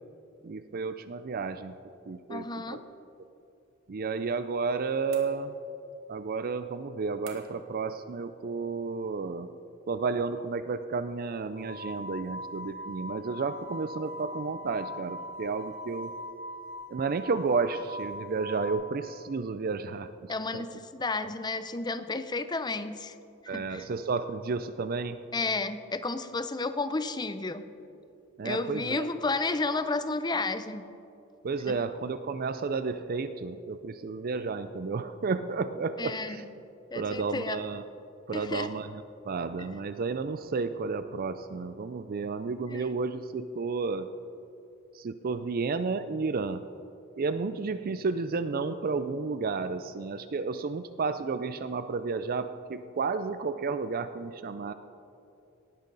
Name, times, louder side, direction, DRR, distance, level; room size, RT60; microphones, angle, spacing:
voice 1, 0.4-1.7 2.1-2.8 3.9-5.5 6.1-9.5 9.9-16.1 16.9-20.1 20.5-20.6 23.5-25.2 28.4-29.1 31.4-36.4 36.9-37.8 38.3-44.1 45.0-46.7 47.2-54.7, right 4 dB, 45° right, 11 dB, 0.4 m, -32 dB
voice 2, 2.3-2.8 20.3-23.1 23.5-23.9 25.3-27.6 28.4-30.8 31.7-31.8 36.0-36.5 36.9-37.6 38.3-38.7 39.6-39.7 42.7-42.9, left 3 dB, 20° left, 11 dB, 0.6 m, -32 dB
sound 1, 5.1-5.8 7.3-7.8, right 6 dB, 85° right, 2.0 m, -51 dB
sound 2, 11.6-18.7, left 1 dB, 40° left, 3.4 m, -41 dB
18.5 x 14.5 x 4.0 m, 2.7 s
head